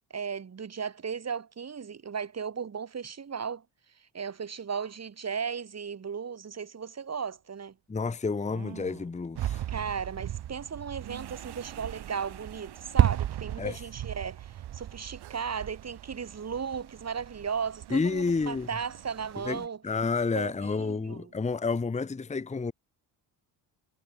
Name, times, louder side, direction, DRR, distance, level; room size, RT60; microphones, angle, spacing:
voice 1, 0.1-3.6 4.1-7.7 9.7-19.8 20.3-21.3, right 6 dB, 35° right, 2.0 m, -36 dB
sound 1, 6.8-6.9 8.3-9.2 11.0-11.4 12.4-12.5 13.0-13.1 15.2-15.6 17.5-17.6 17.9-18.3, right 15 dB, 80° right, 5.4 m, -48 dB
voice 2, 7.9-9.6 13.6-13.8 17.9-18.7 19.4-22.7, left 4 dB, 15° left, 0.9 m, -30 dB
sound 2, 9.4-19.7, right 12 dB, 60° right, 1.4 m, -34 dB
supercardioid pair, 75°, 45 cm